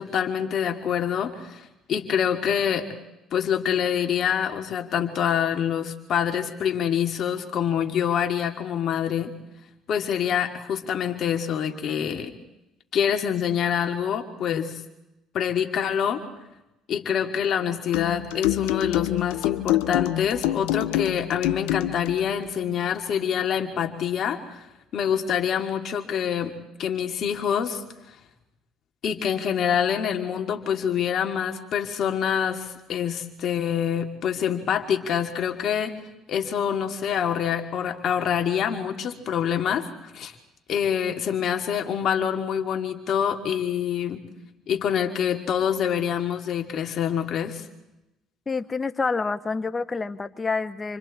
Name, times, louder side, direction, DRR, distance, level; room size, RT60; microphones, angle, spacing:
voice 1, 0.0-2.9 3.3-9.3 9.9-12.3 12.9-14.8 15.3-16.2 16.9-24.6 24.9-26.5 26.8-27.8 29.0-36.0 36.3-40.3 40.7-44.2 44.7-47.6, left 8 dB, 60° left, 4 dB, 2.8 m, -26 dB
sound 1, 17.9-22.2, left 15 dB, 85° left, 0.7 m, -26 dB
voice 2, 48.5-51.0, left 4 dB, 30° left, 11 dB, 1.3 m, -28 dB
29.0 x 24.5 x 4.5 m, 0.95 s
hypercardioid pair, 65°, 0 cm